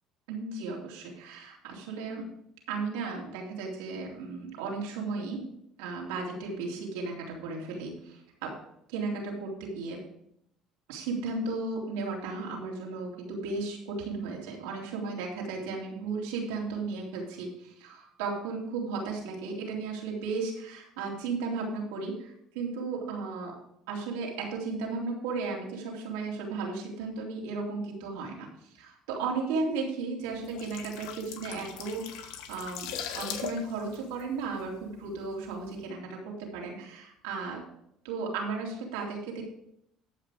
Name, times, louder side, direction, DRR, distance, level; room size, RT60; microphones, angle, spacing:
voice 1, 0.3-2.3 2.7-5.4 5.8-8.6 8.9-10.0 10.9-23.6 23.9-37.6 38.0-39.4, right 4 dB, 85° right, -2 dB, 3.5 m, -35 dB
sound 1, 30.3-35.1 35.4-35.7, left 8 dB, 80° left, 1.4 m, -40 dB
13.5 x 6.0 x 5.0 m, 0.73 s
supercardioid pair, 85°, 0 cm